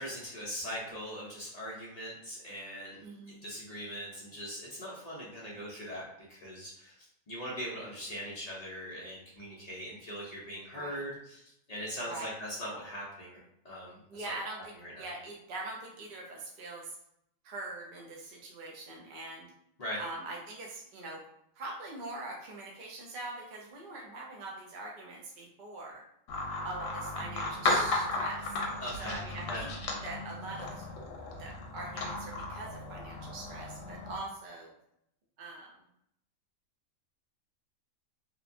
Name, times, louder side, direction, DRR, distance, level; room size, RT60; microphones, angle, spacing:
voice 1, 0.0-3.0 3.4-6.0 6.3-13.4 13.6-14.4 14.8-15.1 19.8-20.0 28.8-29.7, equal, 50° left, -5 dB, 0.4 m, -41 dB
voice 2, 3.0-3.4 10.7-11.0 12.0-12.3 14.1-17.0 17.4-19.5 20.0-21.2 21.6-26.0 26.6-28.5 29.0-29.7 30.0-30.8 31.4-34.7 35.4-35.8, right 2 dB, 55° right, -1 dB, 0.6 m, -43 dB
sound 1, 26.3-34.2, left 2 dB, 75° left, 0.9 m, -35 dB
2.9 x 2.1 x 2.5 m, 0.75 s
omnidirectional pair, 1.4 m